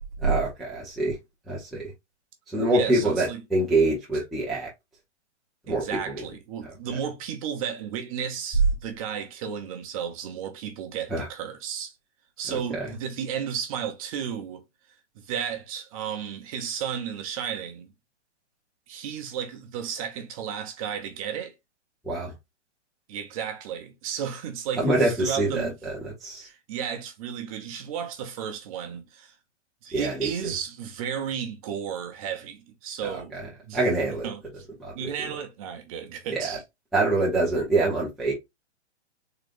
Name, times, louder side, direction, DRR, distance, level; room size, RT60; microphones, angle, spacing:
voice 1, 0.2-1.1 1.5-1.8 2.5-4.7 5.7-5.8 6.1-6.2 11.1-11.3 12.7-12.8 22.0-22.3 24.8-26.5 29.9-30.3 33.3-33.4 33.7-34.2 34.8-34.9 36.3-36.5 36.9-38.3, right 2 dB, ahead, 0.5 m, -25 dB
voice 2, 2.7-3.4 4.1-4.2 5.7-11.9 12.4-14.6 15.1-17.9 18.9-21.5 23.1-25.7 26.4-29.3 29.8-33.4 33.6-34.6 34.9-36.6, right 8 dB, 30° right, 0.8 m, -33 dB
3.7 x 3.2 x 2.5 m
hypercardioid pair, 155°, 35 cm